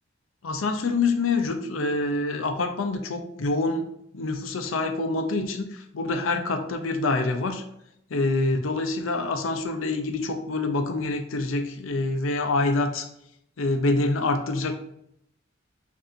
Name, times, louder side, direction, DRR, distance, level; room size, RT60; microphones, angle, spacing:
voice 1, 0.4-7.6 8.1-13.1 13.6-14.7, left 3 dB, 85° left, 7 dB, 0.6 m, -26 dB
6.6 x 2.7 x 2.6 m, 0.77 s
head